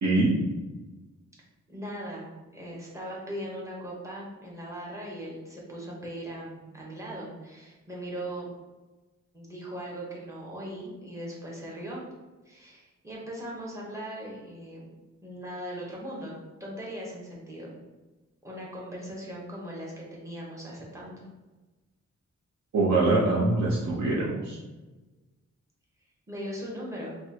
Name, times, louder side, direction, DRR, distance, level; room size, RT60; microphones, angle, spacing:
voice 1, 0.0-0.4 22.7-24.6, right 2 dB, 65° right, -7 dB, 0.9 m, -23 dB
voice 2, 1.7-8.5 9.3-12.0 12.4-14.9 15.2-16.3 16.6-17.7 18.4-21.3 26.3-27.2, equal, 10° right, -5 dB, 1.0 m, -39 dB
5.3 x 2.3 x 2.9 m, 1.2 s
wide cardioid pair, 160°, 30 cm